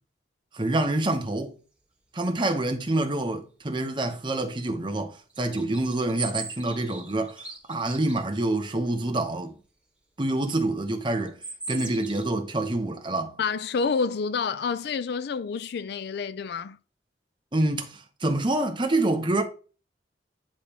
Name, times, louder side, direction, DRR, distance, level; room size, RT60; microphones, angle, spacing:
voice 1, 0.5-1.6 2.1-9.5 10.2-11.4 11.7-13.4 17.5-19.4, right 2 dB, 25° right, 0.9 m, -27 dB
sound 1, 5.3-8.2 11.2-12.2, right 4 dB, 5° right, 1.3 m, -38 dB
voice 2, 13.4-16.8, left 5 dB, 60° left, 0.4 m, -28 dB
10.0 x 3.4 x 2.9 m
head